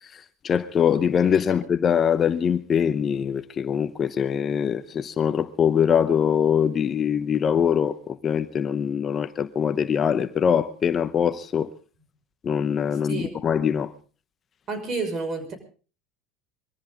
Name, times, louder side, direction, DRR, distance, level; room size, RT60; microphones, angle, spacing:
voice 1, 0.0-11.7 12.4-13.9, left 8 dB, 30° left, 0.9 m, -23 dB
voice 2, 14.7-15.5, right 4 dB, 40° right, 6.0 m, -29 dB
23.0 x 14.5 x 3.8 m
supercardioid pair, 110°, 0 cm